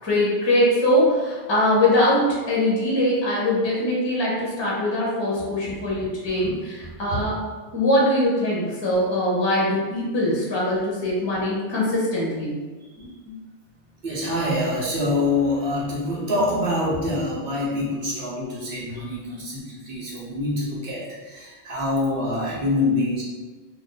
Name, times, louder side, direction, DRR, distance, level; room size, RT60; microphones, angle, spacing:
voice 1, 0.0-7.4 7.7-12.5 13.0-13.3, left 1 dB, 30° left, -5 dB, 0.7 m, -22 dB
voice 2, 14.0-23.2, left 2 dB, 60° right, -5 dB, 1.0 m, -25 dB
2.6 x 2.4 x 3.7 m, 1.3 s
omnidirectional pair, 1.1 m